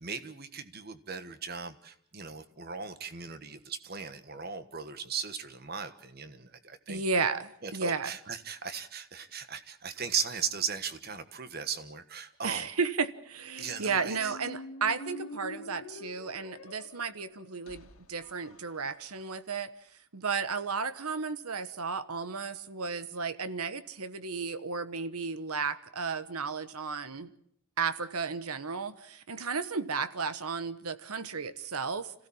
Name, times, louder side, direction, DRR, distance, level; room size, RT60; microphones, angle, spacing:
voice 1, 0.0-7.0 7.6-12.6 13.6-14.4, right 6 dB, 45° right, 10 dB, 1.4 m, -37 dB
voice 2, 6.9-8.1 12.4-19.7 20.1-27.3 27.8-32.1, right 5 dB, 90° right, 13 dB, 1.3 m, -33 dB
Squeak, 13.4-19.3, left 1 dB, 75° left, 1.9 m, -47 dB
27.0 x 16.0 x 7.2 m, 0.70 s
head